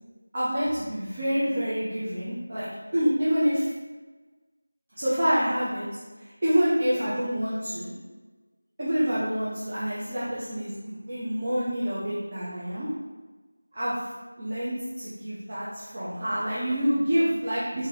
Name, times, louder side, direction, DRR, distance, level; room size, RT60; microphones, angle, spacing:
voice 1, 0.3-3.7 5.0-5.9 6.4-7.9 8.8-12.9 13.7-14.0 14.4-17.9, equal, 30° right, -10 dB, 0.9 m, -27 dB
4.7 x 2.9 x 3.8 m, 1.3 s
figure-of-eight pair, 175°, 0 cm